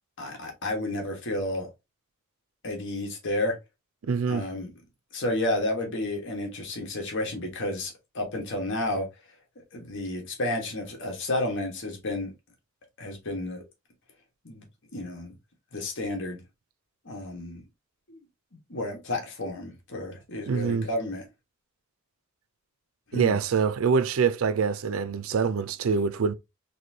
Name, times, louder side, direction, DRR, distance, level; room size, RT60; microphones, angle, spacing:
voice 1, 0.2-1.7 2.6-3.5 4.3-4.7 5.1-9.1 9.7-12.3 13.0-13.6 14.4-14.6 14.9-15.3 15.7-16.4 17.0-17.6 18.7-21.2 23.1-23.4, left 1 dB, 60° left, 1.5 m, -31 dB
voice 2, 4.0-4.5 20.5-20.9 23.1-26.3, right 5 dB, 70° right, 0.4 m, -25 dB
4.1 x 3.2 x 2.8 m
head